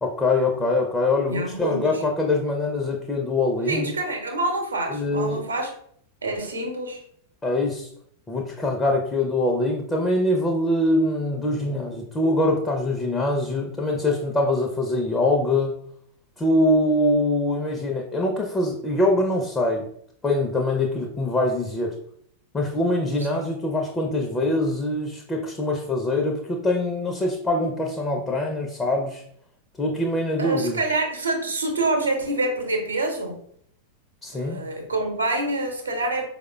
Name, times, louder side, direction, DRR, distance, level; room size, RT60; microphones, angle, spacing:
voice 1, 0.0-3.9 4.9-5.4 7.4-7.9 8.3-15.7 16.4-19.9 20.2-22.0 22.5-29.2 29.8-30.8 34.2-34.6, left 2 dB, 15° left, 0 dB, 0.5 m, -23 dB
voice 2, 1.3-2.0 3.7-5.7 6.2-7.0 23.3-23.5 30.4-33.4 34.3-36.3, right 2 dB, 75° right, 3 dB, 0.8 m, -26 dB
4.6 x 2.1 x 2.2 m, 0.66 s
figure-of-eight pair, 90°, 0 cm